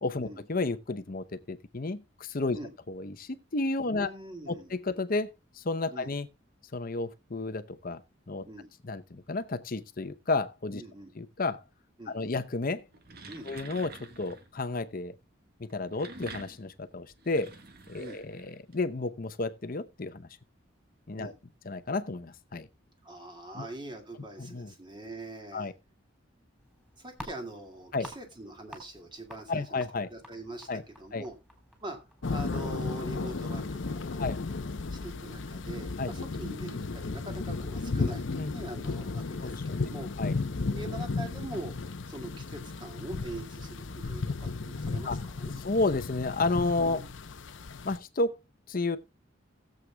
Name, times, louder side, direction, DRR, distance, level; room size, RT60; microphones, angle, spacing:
voice 1, 0.0-2.6 2.9-4.1 4.5-6.3 6.7-8.5 8.8-10.8 11.2-11.6 12.1-12.8 13.4-15.1 15.6-17.5 17.9-20.3 21.1-21.3 21.6-22.7 23.5-23.7 24.4-24.7 25.5-25.7 27.9-28.1 29.5-30.1 30.7-30.8 31.1-31.2 34.2-34.4 36.0-36.1 38.4-38.5 39.4-39.8 40.2-40.3 45.0-45.2 45.6-47.0 47.8-48.4 48.7-49.0, left 3 dB, 45° left, 0.8 m, -32 dB
voice 2, 3.9-4.7 5.9-6.1 8.4-8.7 10.8-11.1 12.0-12.4 13.3-13.5 18.0-18.2 21.2-21.4 23.0-25.7 27.0-29.8 30.1-31.3 31.8-32.0 32.3-34.2 34.9-40.1 40.7-41.7 42.1-45.6 46.8-47.1, right 1 dB, 25° right, 2.2 m, -43 dB
sound 1, 12.8-14.5 15.7-18.7, right 3 dB, 50° right, 1.5 m, -48 dB
sound 2, 26.6-33.3, equal, 5° right, 3.4 m, -51 dB
sound 3, 32.2-48.0, left 3 dB, 70° left, 0.8 m, -34 dB
18.5 x 7.7 x 2.3 m
head